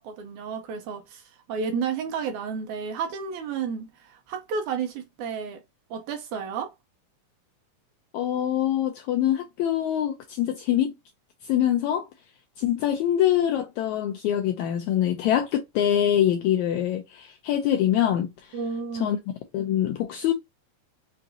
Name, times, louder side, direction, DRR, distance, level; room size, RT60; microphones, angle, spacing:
voice 1, 0.0-5.6 5.9-6.7 18.5-19.2, right 6 dB, 75° right, 2.0 m, -32 dB
voice 2, 8.1-10.9 11.4-12.1 12.6-18.6 18.9-19.2 19.5-20.3, left 11 dB, 85° left, 1.7 m, -24 dB
5.6 x 2.6 x 2.7 m
omnidirectional pair, 3.8 m